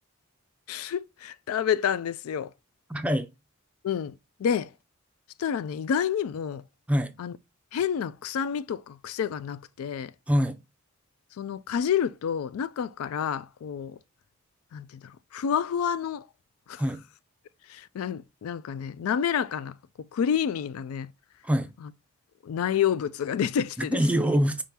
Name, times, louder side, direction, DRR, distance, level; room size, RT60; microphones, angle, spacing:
voice 1, 0.7-2.5 3.8-4.1 4.4-4.7 5.4-6.6 7.2-7.3 7.7-10.1 11.4-14.0 14.7-16.3 16.7-16.8 17.7-19.7 20.1-21.1 21.8-21.9 22.4-24.0, left 8 dB, 85° left, 0.3 m, -29 dB
voice 2, 2.9-3.3 6.9-7.1 10.3-10.6 16.8-17.0 21.4-21.7 23.8-24.6, equal, 5° right, 0.4 m, -24 dB
5.0 x 3.7 x 2.8 m
head